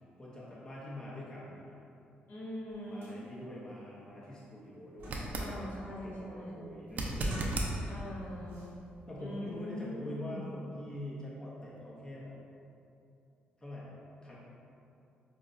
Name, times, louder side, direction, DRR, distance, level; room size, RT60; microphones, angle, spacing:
voice 1, 0.2-1.8 2.9-5.6 5.9-8.0 9.1-12.4 13.6-13.9 14.2-14.4, left 1 dB, 20° left, -5 dB, 0.6 m, -45 dB
voice 2, 2.3-3.2 5.4-6.7 7.9-8.8 9.2-10.5, left 1 dB, 55° left, -5 dB, 0.6 m, -42 dB
sound 1, 2.7-2.8 3.0-3.2 3.7-3.8 4.2-5.6 6.0-6.3 7.1-8.1 8.5-8.7, equal, 80° right, 0.9 m, -47 dB
sound 2, 5.0-5.5 6.9-7.7 10.7-10.8, right 1 dB, 45° right, 0.4 m, -34 dB
4.7 x 2.1 x 2.5 m, 2.6 s
cardioid pair, 105°, 4 cm